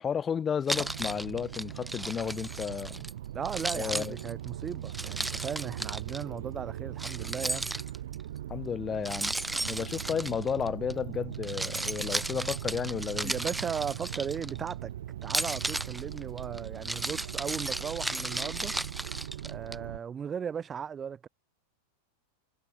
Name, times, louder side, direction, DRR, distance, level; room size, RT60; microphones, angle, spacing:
voice 1, 0.0-3.0 3.7-4.2 8.5-9.3 9.6-13.3, left 7 dB, 20° left, 1.0 m, -32 dB
Keys jangling, 0.7-3.1 3.5-6.2 7.0-8.2 9.1-10.9 11.3-14.7 15.2-19.8, right 1 dB, 5° right, 0.5 m, -35 dB
sound 1, 0.7-20.0, right 12 dB, 60° right, 1.0 m, -40 dB
voice 2, 3.3-7.7 13.2-14.9 15.2-18.7 19.4-21.3, right 7 dB, 20° right, 1.0 m, -37 dB
figure-of-eight pair, 90°, 0 cm